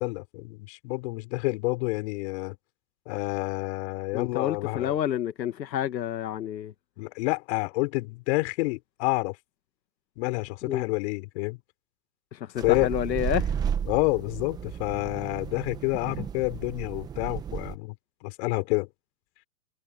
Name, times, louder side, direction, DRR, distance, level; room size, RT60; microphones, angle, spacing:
voice 1, 0.0-2.6 3.1-5.0 7.0-9.4 10.2-11.6 12.6-12.9 13.9-18.0 18.2-18.9, left 25 dB, 40° left, 4.4 m, -28 dB
voice 2, 4.1-6.7 10.6-10.8 12.3-13.5, left 10 dB, 85° left, 1.7 m, -29 dB
sound 1, 12.6-17.8, right 8 dB, 10° right, 0.7 m, -33 dB
hypercardioid pair, 150°, 50 cm